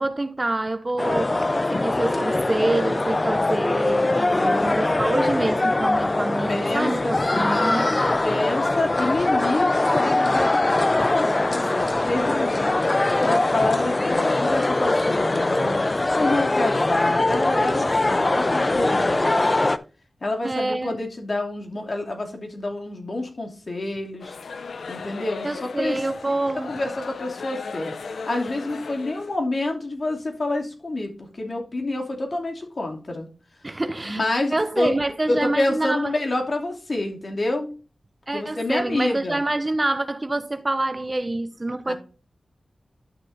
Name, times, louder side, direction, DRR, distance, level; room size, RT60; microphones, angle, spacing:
voice 1, 0.0-1.4 1.7-7.0 7.4-7.9 20.4-21.0 25.4-26.8 33.6-34.2 34.5-36.2 38.3-41.9, right 2 dB, 30° right, 0.8 m, -26 dB
sound 1, 1.0-19.8, left 2 dB, 35° left, 0.6 m, -22 dB
voice 2, 4.3-4.8 6.5-7.9 8.2-19.7 20.2-24.3 24.9-26.0 26.7-33.3 34.0-34.9 35.3-37.7 38.3-39.4 41.8-41.9, left 2 dB, 50° left, 2.8 m, -28 dB
sound 2, 24.2-29.3, left 4 dB, 85° left, 0.6 m, -36 dB
11.5 x 6.6 x 2.7 m
cardioid pair, 55°, 0 cm